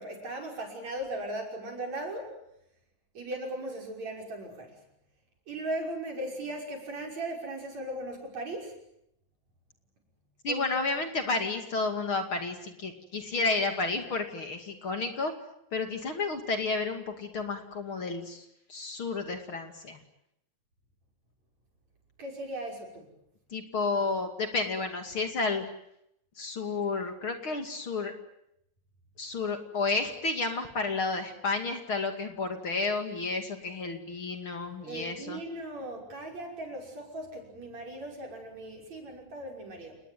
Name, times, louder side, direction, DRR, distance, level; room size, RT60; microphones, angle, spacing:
voice 1, 0.0-2.3 3.1-4.8 5.5-8.8 10.5-10.9 22.2-23.1 34.9-40.0, right 1 dB, 65° right, 2 dB, 7.3 m, -38 dB
voice 2, 10.4-15.3 15.7-20.0 23.5-25.6 26.4-28.1 29.2-35.4, left 3 dB, 45° left, 6 dB, 3.1 m, -31 dB
29.0 x 20.0 x 9.4 m, 0.77 s
omnidirectional pair, 3.4 m